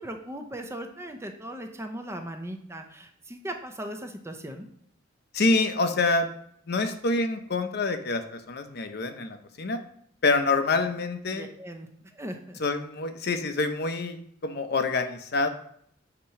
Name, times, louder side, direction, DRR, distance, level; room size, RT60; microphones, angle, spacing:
voice 1, 0.0-4.7 11.3-11.9 12.1-12.6, right 1 dB, 15° right, 5 dB, 0.6 m, -38 dB
voice 2, 5.3-6.3 6.7-9.8 10.2-11.5 12.6-14.2 14.4-15.5, left 3 dB, 55° left, 8 dB, 0.7 m, -26 dB
8.4 x 2.9 x 5.7 m, 0.67 s
head